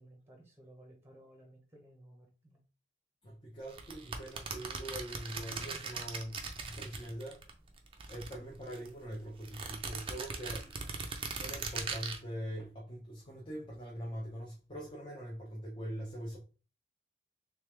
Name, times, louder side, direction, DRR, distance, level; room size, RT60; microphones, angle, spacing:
voice 1, 0.0-2.6, right 1 dB, 10° right, 0.8 m, -57 dB
voice 2, 3.2-7.4 8.1-10.7 11.4-16.4, equal, 25° left, 0.7 m, -43 dB
sound 1, 3.7-7.5 7.8-8.9 9.4-12.2, right 4 dB, 25° right, 0.5 m, -40 dB
3.3 x 3.3 x 3.3 m
head